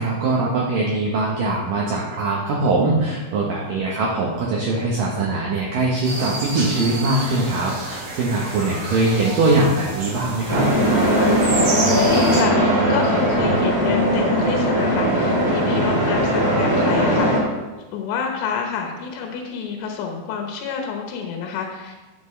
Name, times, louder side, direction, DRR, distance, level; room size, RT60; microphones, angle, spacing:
voice 1, 0.0-10.7, right 2 dB, 80° right, -3 dB, 2.0 m, -22 dB
sound 1, 6.0-12.4, right 2 dB, 45° right, 4.5 m, -30 dB
sound 2, 10.5-17.4, equal, 20° right, 0.7 m, -19 dB
voice 2, 11.8-17.5 17.9-22.0, left 6 dB, 80° left, 2 dB, 3.5 m, -28 dB
14.0 x 7.9 x 3.3 m, 1.2 s
omnidirectional pair, 5.7 m